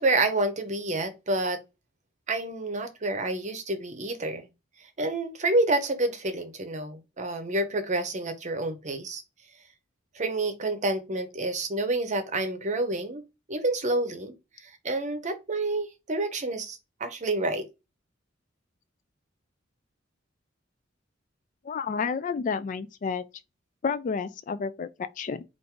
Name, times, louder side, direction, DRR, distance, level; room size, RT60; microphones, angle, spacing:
voice 1, 0.0-1.6 2.3-4.5 5.0-9.2 10.1-13.2 13.5-17.7, right 2 dB, 40° right, 0.8 m, -28 dB
voice 2, 21.6-23.2 23.8-25.4, left 5 dB, 40° left, 0.3 m, -30 dB
4.5 x 2.6 x 3.6 m
head